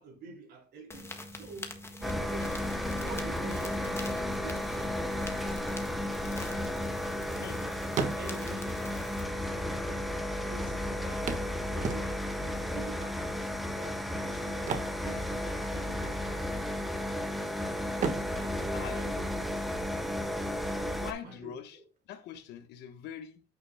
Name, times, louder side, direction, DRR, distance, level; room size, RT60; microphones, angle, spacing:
voice 1, 0.0-6.0 6.4-6.7 7.1-7.7 8.2-9.1 9.3-11.3 11.7-13.4 13.7-14.7 15.0-16.3 18.3-19.7 20.7-21.9, right 4 dB, 70° right, 3.7 m, -48 dB
sound 1, 0.9-9.2, left 1 dB, 15° left, 1.5 m, -45 dB
sound 2, 2.0-21.1, left 1 dB, ahead, 1.1 m, -33 dB
sound 3, 8.0-8.7 9.6-9.7 9.9-10.0 11.3-12.5 14.5-15.8 16.1-16.3 16.8-17.4 17.9-19.7 21.7-21.8 22.2-22.3, right 5 dB, 45° right, 1.4 m, -36 dB
voice 2, 20.9-21.8 22.1-23.4, left 9 dB, 85° left, 1.1 m, -43 dB
9.0 x 6.1 x 2.2 m
cardioid pair, 110°, 17 cm